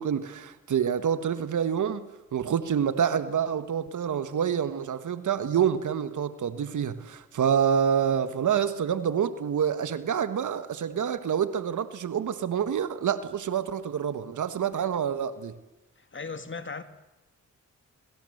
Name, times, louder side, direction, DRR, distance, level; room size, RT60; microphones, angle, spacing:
voice 1, 0.0-2.0 2.3-15.5, right 8 dB, 70° right, 1.5 m, -27 dB
voice 2, 16.0-16.8, left 4 dB, 40° left, 2.4 m, -37 dB
26.5 x 23.0 x 8.0 m
cardioid pair, 60°, 31 cm